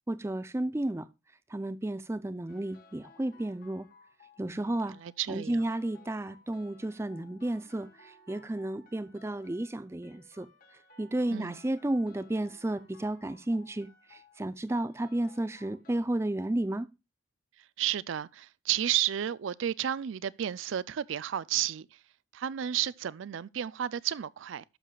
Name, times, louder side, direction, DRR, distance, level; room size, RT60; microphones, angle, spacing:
voice 1, 0.1-1.1 1.5-3.9 4.4-5.0 5.3-10.5 11.0-16.9, right 1 dB, 15° right, 0.4 m, -32 dB
sound 1, 2.5-16.0, left 3 dB, 45° left, 1.2 m, -59 dB
voice 2, 4.5-5.6 11.3-11.6 17.8-22.0 22.3-24.6, right 11 dB, 80° right, 0.4 m, -32 dB
12.0 x 6.8 x 2.3 m
head